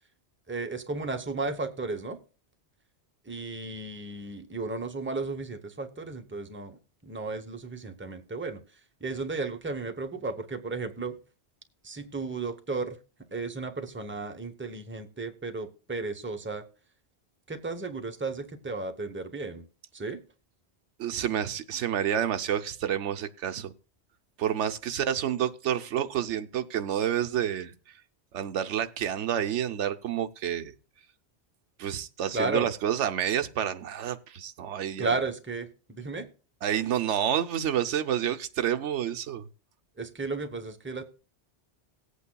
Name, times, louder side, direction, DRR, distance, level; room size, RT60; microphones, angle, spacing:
voice 1, 0.5-2.2 3.3-6.8 7.0-8.6 9.0-11.2 11.8-13.0 13.3-16.6 17.5-19.6 19.9-20.2 32.3-32.7 35.0-36.3 40.0-41.0, right 3 dB, 10° right, 6 dB, 0.9 m, -34 dB
voice 2, 21.0-23.7 24.4-27.7 28.3-30.7 31.8-35.2 36.6-39.5, right 10 dB, 85° right, 9 dB, 1.0 m, -29 dB
18.5 x 8.3 x 2.3 m, 0.35 s
omnidirectional pair, 1.2 m